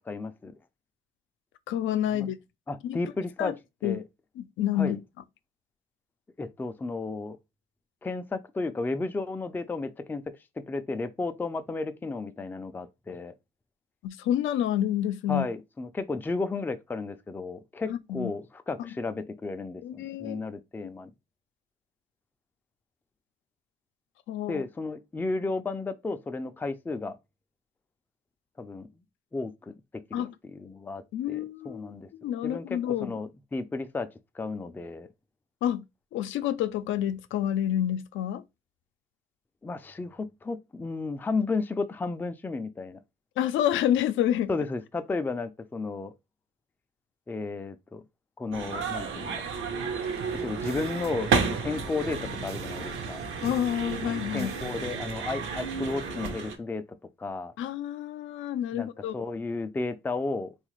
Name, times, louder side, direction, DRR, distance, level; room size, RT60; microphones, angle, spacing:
voice 1, 0.1-0.5 2.1-2.3 2.7-3.6 3.8-4.0 4.8-5.0 6.4-7.4 8.0-13.3 15.3-21.1 24.5-27.2 28.6-28.9 29.3-32.1 32.4-34.1 34.3-35.1 39.6-43.0 44.5-46.1 47.3-48.0 48.4-49.4 50.3-53.2 54.0-56.8 57.2-57.5 58.7-60.5, left 3 dB, 10° left, 0.3 m, -33 dB
voice 2, 1.7-2.4 2.8-3.0 3.4-3.5 3.8-4.0 4.4-5.0 14.0-15.5 17.9-18.3 19.8-20.4 24.3-24.6 30.1-30.3 31.1-33.2 35.6-35.8 36.1-38.4 43.4-44.5 53.4-54.5 57.6-59.1, left 11 dB, 75° left, 0.4 m, -28 dB
sound 1, 48.5-56.6, right 5 dB, 75° right, 0.8 m, -32 dB
sound 2, 50.0-55.0, right 8 dB, 55° right, 0.4 m, -44 dB
3.4 x 2.4 x 3.0 m
cardioid pair, 90°, 20 cm